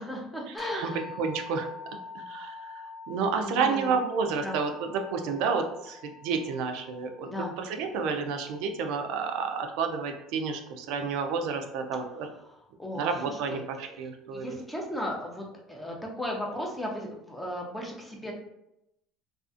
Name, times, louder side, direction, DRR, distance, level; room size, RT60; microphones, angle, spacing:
voice 1, 0.0-1.0 3.4-4.0 4.4-4.6 7.2-7.5 12.4-18.3, left 1 dB, 5° left, -1 dB, 0.5 m, -36 dB
sound 1, 0.6-10.0, left 4 dB, 30° left, 1.0 m, -46 dB
voice 2, 1.2-1.7 2.1-7.3 7.6-12.3 12.9-14.6, right 5 dB, 65° right, 4 dB, 0.3 m, -30 dB
2.4 x 2.3 x 2.4 m, 0.83 s
cardioid pair, 140°, 0 cm